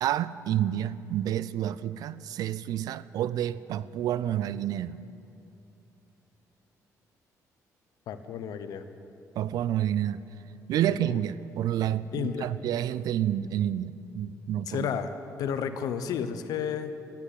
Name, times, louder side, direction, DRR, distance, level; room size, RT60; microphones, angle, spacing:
voice 1, 0.0-5.0 9.4-10.2 10.7-14.9, right 11 dB, 75° right, 0.4 m, -29 dB
voice 2, 8.1-8.8 10.9-11.2 12.1-12.5 14.7-15.1 15.4-17.0, left 8 dB, 75° left, 0.9 m, -32 dB
12.0 x 11.5 x 8.2 m
cardioid pair, 110°, 7 cm